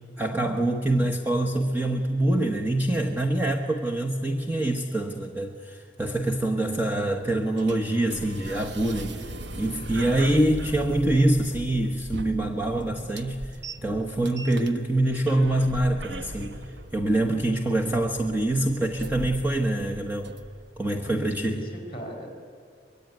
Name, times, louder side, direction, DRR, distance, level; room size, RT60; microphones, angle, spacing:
voice 1, 0.2-13.6 13.8-16.6 16.9-20.3 20.8-21.7, right 1 dB, 10° right, 1 dB, 1.2 m, -25 dB
sound 1, 6.8-20.8, right 1 dB, 75° right, 1.0 m, -39 dB
voice 2, 21.1-22.3, equal, 30° left, 4 dB, 4.6 m, -37 dB
24.0 x 22.5 x 9.2 m, 2.3 s
head